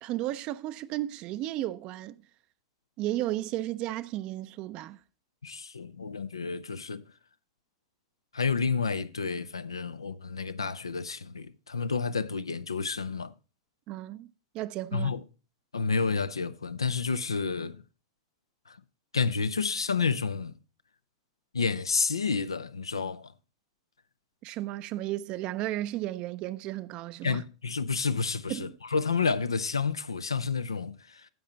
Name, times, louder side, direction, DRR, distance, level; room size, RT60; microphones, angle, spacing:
voice 1, 0.0-2.2 3.0-5.0 13.9-15.1 24.4-27.4 28.5-28.7, right 15 dB, 40° right, 0.4 m, -34 dB
voice 2, 5.4-7.0 8.3-13.3 14.9-15.2 15.7-17.8 18.7-18.8 19.1-20.5 21.5-23.3 27.2-31.3, left 5 dB, 85° left, 0.5 m, -30 dB
10.5 x 7.5 x 4.0 m
figure-of-eight pair, 95°, 2 cm